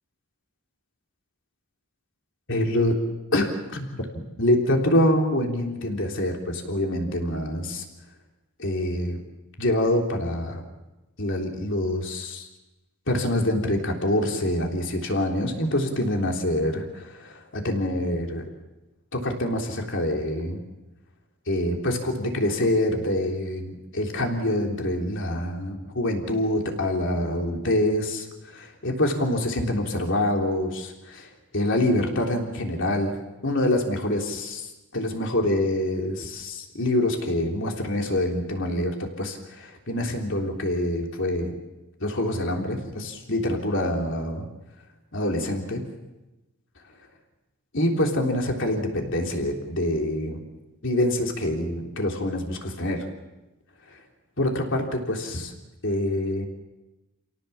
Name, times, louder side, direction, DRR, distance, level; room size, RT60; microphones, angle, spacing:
voice 1, 2.5-3.0 3.3-4.1 4.4-7.8 8.6-9.2 9.6-10.6 11.2-12.5 13.1-18.4 19.1-20.6 21.5-33.2 33.4-34.7 34.9-41.6 42.0-44.4 45.1-45.8 47.7-50.4 50.8-53.1 53.9-54.0 54.4-55.5 55.8-56.5, left 1 dB, 55° left, 2 dB, 3.6 m, -26 dB
28.5 x 17.5 x 7.2 m, 1.0 s
head